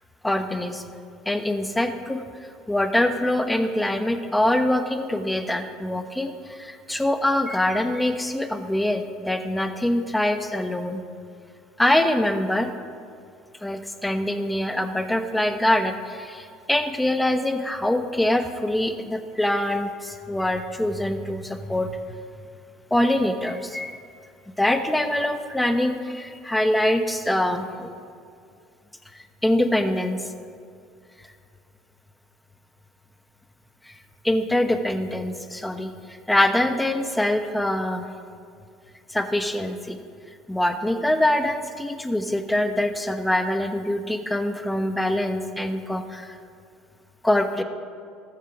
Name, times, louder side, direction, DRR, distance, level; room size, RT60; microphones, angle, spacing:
voice 1, 0.2-0.8 1.3-2.2 2.7-11.0 11.8-12.7 13.6-22.0 22.9-24.0 24.6-27.9 29.4-30.2 33.9-34.0 34.2-38.1 39.1-40.0 40.5-46.4 47.2-47.6, left 1 dB, 5° left, 8 dB, 1.1 m, -24 dB
14.0 x 7.3 x 5.9 m, 2.4 s
hypercardioid pair, 80°, 0 cm